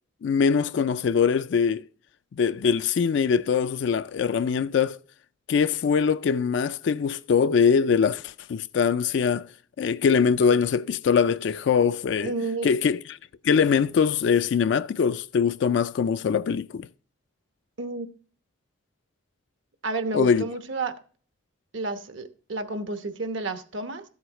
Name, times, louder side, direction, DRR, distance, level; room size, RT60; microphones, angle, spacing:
voice 1, 0.2-1.9 2.3-5.0 5.5-9.5 9.8-12.3 12.6-13.2 13.4-16.9 20.1-20.5, left 6 dB, 65° left, 0.3 m, -22 dB
voice 2, 12.2-12.7 17.8-18.1 19.8-21.0 21.7-24.0, right 3 dB, 75° right, 1.0 m, -31 dB
13.5 x 7.9 x 3.0 m
head